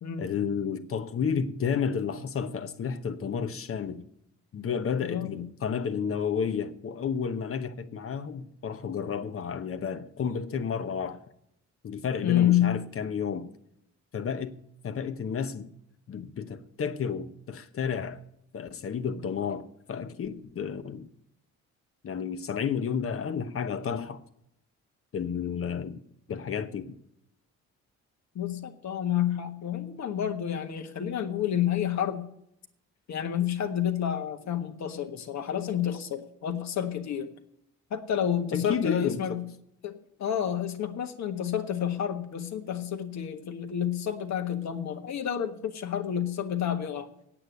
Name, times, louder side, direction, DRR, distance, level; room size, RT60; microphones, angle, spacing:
voice 1, 0.2-4.0 4.5-11.2 11.8-13.5 14.1-14.6 14.8-15.7 16.1-18.2 18.5-21.1 22.0-24.2 25.1-26.0 26.3-27.0 38.5-39.4, left 6 dB, 45° left, 1.0 m, -31 dB
voice 2, 5.0-5.4 12.2-12.8 28.3-32.2 33.1-37.3 37.9-39.4 39.8-47.1, left 10 dB, 65° left, 1.5 m, -29 dB
8.7 x 8.3 x 9.2 m
cardioid pair, 90°, 30 cm